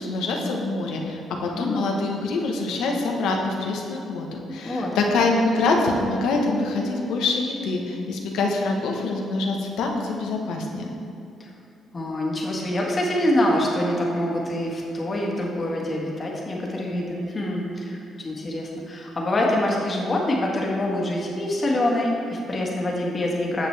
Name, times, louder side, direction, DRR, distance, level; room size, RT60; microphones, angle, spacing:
voice 1, 0.0-10.9, left 3 dB, 85° left, 1 dB, 1.0 m, -25 dB
voice 2, 1.4-2.0 4.6-4.9 11.4-11.5 11.9-23.7, left 1 dB, 35° left, -2 dB, 1.5 m, -25 dB
9.4 x 6.5 x 3.3 m, 2.7 s
cardioid pair, 90°, 0 cm